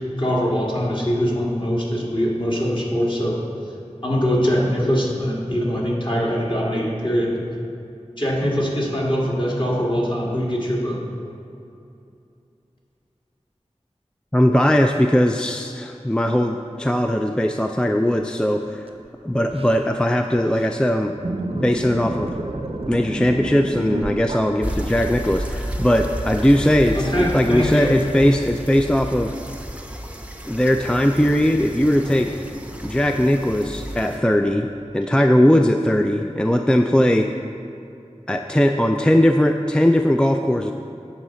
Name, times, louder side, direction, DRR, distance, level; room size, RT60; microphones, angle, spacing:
voice 1, 0.2-3.4 4.0-7.4 8.2-11.0 26.9-28.0, equal, 45° left, -4 dB, 1.7 m, -22 dB
voice 2, 14.3-18.8 19.2-21.1 21.5-22.4 22.9-29.4 30.5-32.3 32.8-37.3 38.3-40.7, equal, 5° left, 5 dB, 0.3 m, -19 dB
sound 1, 19.1-19.2 19.3-19.8 20.4-20.8 21.1-25.0 26.0-27.1, right 1 dB, 55° right, 0.7 m, -30 dB
sound 2, 24.6-34.2, equal, 10° right, 0.7 m, -32 dB
8.8 x 4.1 x 6.8 m, 2.7 s
wide cardioid pair, 45°, 12 cm